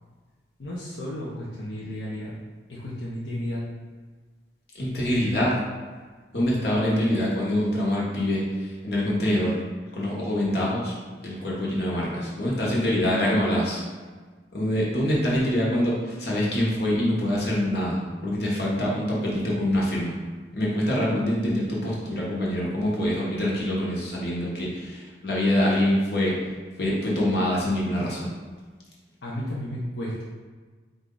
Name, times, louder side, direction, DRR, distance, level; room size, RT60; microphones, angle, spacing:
voice 1, 0.6-2.3 2.7-3.6 29.2-30.2, equal, 90° left, -7 dB, 0.7 m, -33 dB
voice 2, 4.7-5.5 6.3-9.6 9.9-11.0 11.2-13.8 14.5-18.0 18.2-20.1 20.5-26.5 26.8-28.3, left 1 dB, 65° left, -5 dB, 1.2 m, -25 dB
4.5 x 2.6 x 3.8 m, 1.4 s
head